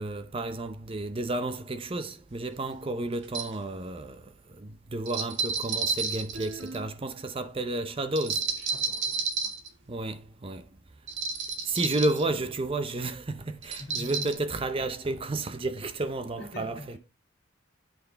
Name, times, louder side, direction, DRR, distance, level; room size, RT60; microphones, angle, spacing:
voice 1, 0.0-4.2 4.6-8.4 9.9-10.6 11.6-17.0, right 2 dB, 25° right, 0.6 m, -32 dB
sound 1, 2.3-2.4 3.2-3.6 5.1-6.9 8.2-9.7 11.1-12.2 13.6-14.3, right 5 dB, 65° right, 1.7 m, -31 dB
voice 2, 2.6-3.0 8.6-9.5 13.8-14.6 16.4-17.0, left 1 dB, 55° left, 2.3 m, -44 dB
8.9 x 5.7 x 3.9 m
head